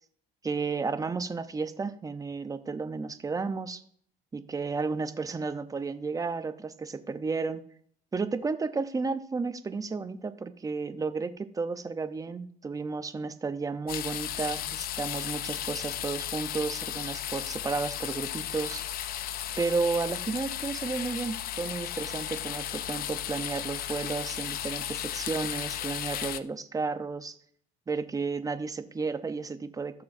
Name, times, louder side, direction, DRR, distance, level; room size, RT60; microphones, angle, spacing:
voice 1, 0.4-3.8 4.3-7.6 8.1-18.8 19.6-27.4 27.9-30.0, right 4 dB, 20° right, 11 dB, 0.7 m, -32 dB
sound 1, 13.9-26.4, left 11 dB, 60° left, 0.5 m, -35 dB
15.5 x 6.8 x 2.7 m, 0.62 s
cardioid pair, 110°, 17 cm